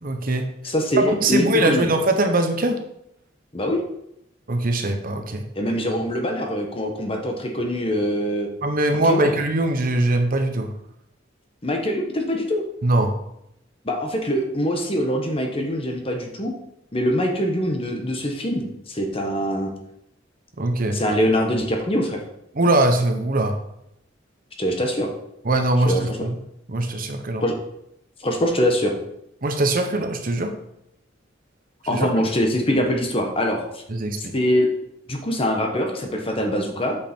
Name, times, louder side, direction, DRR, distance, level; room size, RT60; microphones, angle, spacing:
voice 1, 0.0-2.8 4.5-5.4 8.6-10.7 12.8-13.1 20.6-21.0 22.5-23.6 25.4-26.4 26.7-27.4 29.4-30.5 31.9-32.1 33.9-34.3, right 1 dB, 45° right, 6 dB, 0.9 m, -22 dB
voice 2, 0.6-1.9 3.5-3.8 5.6-8.5 9.0-9.3 11.6-12.6 13.8-16.5 16.9-19.7 20.9-22.2 24.6-25.1 25.9-26.2 27.4-27.5 28.2-29.0 31.9-33.8 34.3-34.7 35.1-37.0, equal, 30° left, 2 dB, 1.1 m, -23 dB
8.4 x 5.2 x 4.5 m, 0.78 s
head